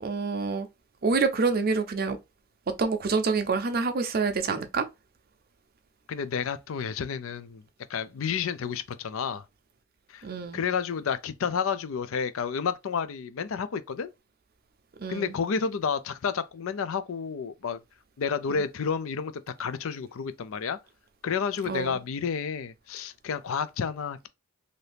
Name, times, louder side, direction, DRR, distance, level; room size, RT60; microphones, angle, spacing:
voice 1, 0.0-0.7 1.0-2.2 2.7-4.9 10.2-10.6 15.0-15.3 18.5-18.6 21.7-22.0, right 4 dB, 45° right, 0.5 m, -27 dB
voice 2, 6.1-7.6 7.9-9.4 10.1-10.2 10.5-14.1 15.1-17.8 18.2-19.3 19.6-20.8 21.2-24.3, left 6 dB, 65° left, 0.4 m, -30 dB
2.8 x 2.6 x 3.3 m
head